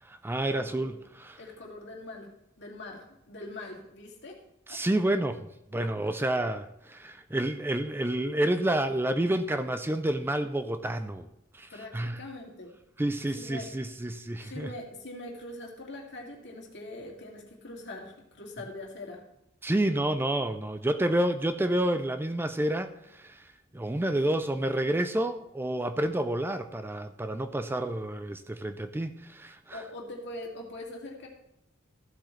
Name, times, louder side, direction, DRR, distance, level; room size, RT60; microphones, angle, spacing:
voice 1, 0.0-1.4 4.7-11.3 11.5-12.2 13.0-14.7 19.6-29.8, right 1 dB, 10° right, 9 dB, 0.4 m, -29 dB
voice 2, 0.5-1.0 1.4-2.3 2.6-4.4 4.7-4.8 5.8-5.9 11.7-12.7 13.3-13.7 14.5-19.2 24.1-24.2 29.7-31.3, left 2 dB, 60° left, 0 dB, 2.4 m, -42 dB
15.0 x 7.7 x 3.2 m, 0.83 s
head